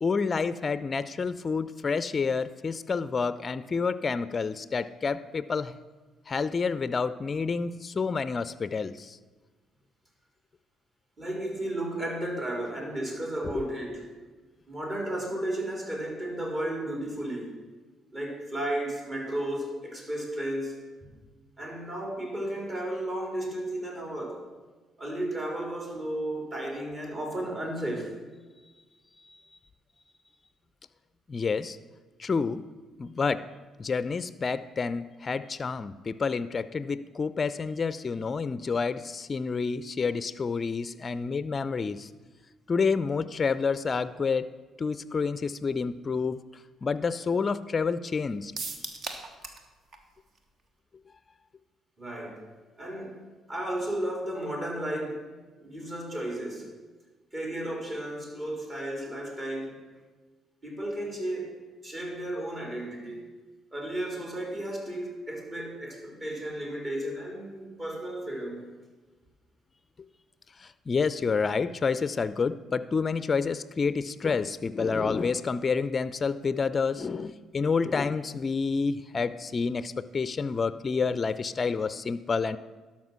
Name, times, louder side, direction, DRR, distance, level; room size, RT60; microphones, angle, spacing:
voice 1, 0.0-5.8 6.3-9.2 29.2-29.4 31.3-31.8 32.2-32.6 33.0-33.5 33.8-42.1 42.7-46.4 46.8-48.5 70.6-82.6, left 5 dB, 40° left, 15 dB, 0.4 m, -29 dB
voice 2, 11.2-14.0 14.7-17.5 18.1-20.8 21.6-24.4 25.0-28.1 43.0-43.1 52.0-52.4 52.8-53.2 53.5-55.3 55.6-56.7 57.3-59.8 60.6-63.3 63.7-68.7, right 1 dB, 35° right, -1 dB, 3.6 m, -33 dB
sound 1, 48.6-49.7 49.9-50.0 50.4-50.5, right 3 dB, 55° right, 1.2 m, -37 dB
12.0 x 5.8 x 6.0 m, 1.3 s
hypercardioid pair, 50°, 0 cm